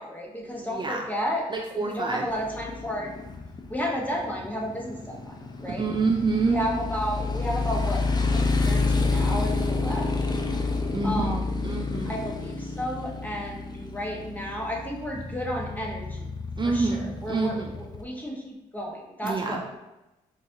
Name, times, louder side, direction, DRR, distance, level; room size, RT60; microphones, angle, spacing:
voice 1, 0.0-1.4 1.7-3.2 3.7-5.8 6.4-8.0 8.3-10.2 11.0-11.6 12.0-16.3 16.6-19.8, equal, 10° left, -2 dB, 1.1 m, -32 dB
voice 2, 0.6-1.0 1.5-2.3 5.7-6.6 10.9-11.4 11.6-12.1 16.6-17.7 19.2-19.6, right 3 dB, 30° right, 1 dB, 0.3 m, -27 dB
Motorcycle, 2.3-18.0, left 3 dB, 25° left, 0.5 m, -29 dB
4.0 x 2.5 x 2.7 m, 0.97 s
supercardioid pair, 55°, 16 cm